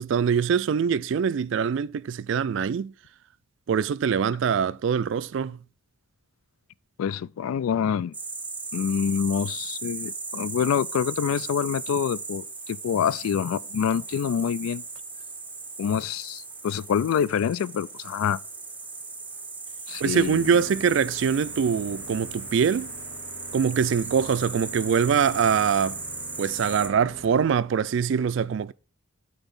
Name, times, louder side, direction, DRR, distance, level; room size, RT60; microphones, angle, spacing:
voice 1, 0.0-2.9 3.7-5.6 20.0-22.9 23.5-26.0 26.4-28.7, right 7 dB, 60° right, 0.3 m, -23 dB
voice 2, 7.0-8.2 8.7-14.8 15.8-18.4 19.9-20.6, left 7 dB, 90° left, 0.3 m, -26 dB
sound 1, 8.1-26.9, right 4 dB, 10° right, 0.7 m, -37 dB
sound 2, 20.0-27.6, left 2 dB, 60° left, 0.8 m, -45 dB
9.1 x 4.1 x 5.3 m
head